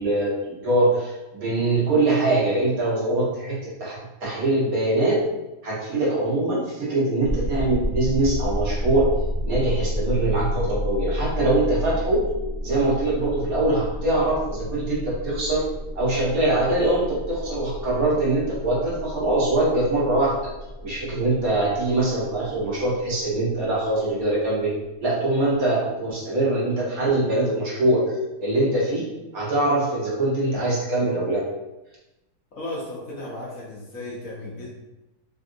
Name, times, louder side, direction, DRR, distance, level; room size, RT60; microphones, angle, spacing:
voice 1, 0.0-5.2 5.6-9.1 9.4-12.2 12.6-15.6 15.9-20.3 20.8-24.7 25.0-28.0 28.4-31.4, right 2 dB, 60° right, -6 dB, 1.3 m, -23 dB
sound 1, 7.2-24.2, equal, 15° left, 1.0 m, -31 dB
voice 2, 32.5-34.7, left 1 dB, 60° left, -5 dB, 1.0 m, -35 dB
3.4 x 2.4 x 2.6 m, 0.99 s
omnidirectional pair, 1.8 m